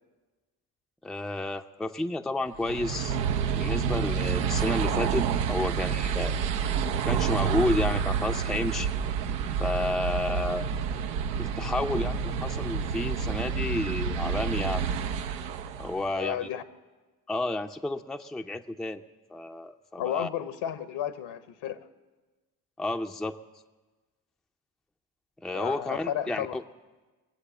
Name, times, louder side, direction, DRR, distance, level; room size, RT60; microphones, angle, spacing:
voice 1, 1.0-3.2 3.5-6.3 7.1-8.9 9.6-10.7 11.4-14.8 15.8-16.5 17.3-19.0 19.3-20.3 22.8-23.4 25.4-26.6, left 2 dB, ahead, 6 dB, 0.6 m, -31 dB
sound 1, 2.6-16.1, right 7 dB, 80° right, 0.8 m, -29 dB
voice 2, 16.1-16.6 20.0-21.8 25.5-26.6, left 10 dB, 60° left, 13 dB, 1.1 m, -33 dB
22.0 x 8.2 x 7.2 m, 1.3 s
hypercardioid pair, 50°, 48 cm